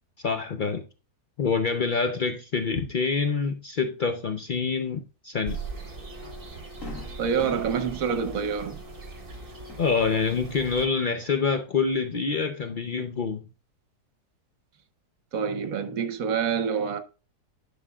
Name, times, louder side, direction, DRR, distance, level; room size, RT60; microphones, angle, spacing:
voice 1, 0.2-0.8 1.4-5.6 9.8-13.4, left 5 dB, 75° left, 0.4 m, -26 dB
sound 1, 5.5-10.9, right 3 dB, 35° right, 1.3 m, -40 dB
Fireworks, 5.8-5.9 6.3-6.4 6.8-10.6 10.9-11.8, left 4 dB, 55° left, 2.3 m, -46 dB
voice 2, 7.2-8.8 15.3-17.0, right 6 dB, 60° right, 1.2 m, -27 dB
11.0 x 5.5 x 2.3 m
omnidirectional pair, 1.7 m